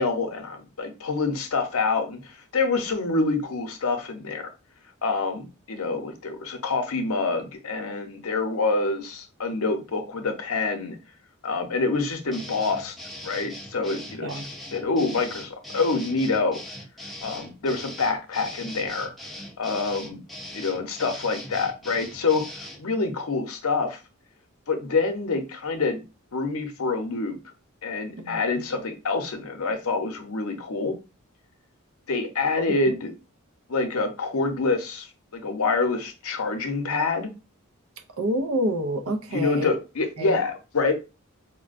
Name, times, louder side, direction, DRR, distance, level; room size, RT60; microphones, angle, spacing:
voice 1, 0.0-4.5 5.0-11.0 11.4-12.9 13.2-14.3 14.7-16.6 17.2-19.1 19.6-20.2 20.5-22.4 22.8-24.0 24.7-26.0 26.3-27.4 27.8-30.9 32.1-33.1 33.7-37.3 39.3-40.9, left 3 dB, 75° left, 0.7 m, -26 dB
sound 1, 12.3-22.8, left 1 dB, ahead, 0.4 m, -40 dB
voice 2, 14.2-14.5 28.2-28.4 32.5-32.6 38.2-39.7 40.2-40.4, right 1 dB, 70° right, 0.5 m, -28 dB
4.4 x 2.1 x 2.5 m
head